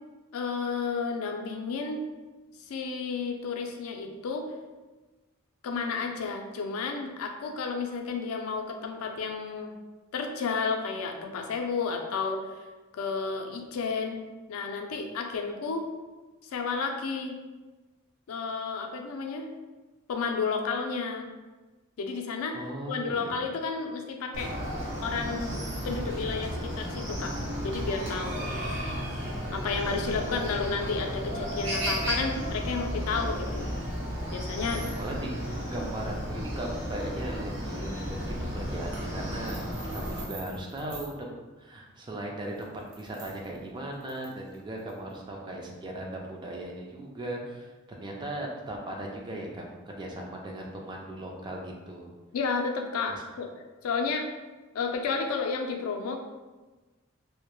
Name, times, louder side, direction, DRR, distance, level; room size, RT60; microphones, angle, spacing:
voice 1, 0.3-2.0 2.7-4.5 5.6-9.7 10.1-12.4 12.9-14.2 14.5-15.9 16.4-17.4 18.3-19.5 20.1-21.3 22.0-22.6 22.9-24.5 25.0-25.6 25.8-27.3 27.6-28.6 29.5-33.8 34.3-34.9 52.3-53.5 53.8-54.3 54.7-56.2, left 4 dB, 80° left, 3 dB, 0.4 m, -31 dB
voice 2, 22.5-23.4 34.9-42.7 43.0-52.1 53.1-53.2, right 1 dB, 20° right, 0 dB, 0.3 m, -38 dB
Chicken rooster, 24.3-40.2, equal, 60° right, 0.9 m, -33 dB
sound 1, 39.4-41.2 42.4-45.1, right 4 dB, 80° right, 0.6 m, -47 dB
2.2 x 2.0 x 3.0 m, 1.2 s
head